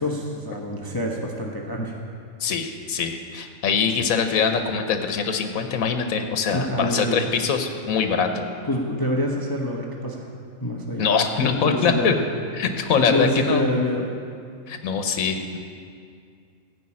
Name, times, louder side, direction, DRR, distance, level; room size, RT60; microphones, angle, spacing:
voice 1, 0.0-1.9 6.5-7.2 8.7-10.3 10.6-11.1 11.4-12.1 13.1-14.1, left 1 dB, 20° left, -1 dB, 0.9 m, -26 dB
voice 2, 2.4-8.5 11.0-12.1 12.5-13.6 14.7-15.6, left 6 dB, 90° left, 6 dB, 1.3 m, -23 dB
15.0 x 5.4 x 8.6 m, 2.3 s
omnidirectional pair, 1.4 m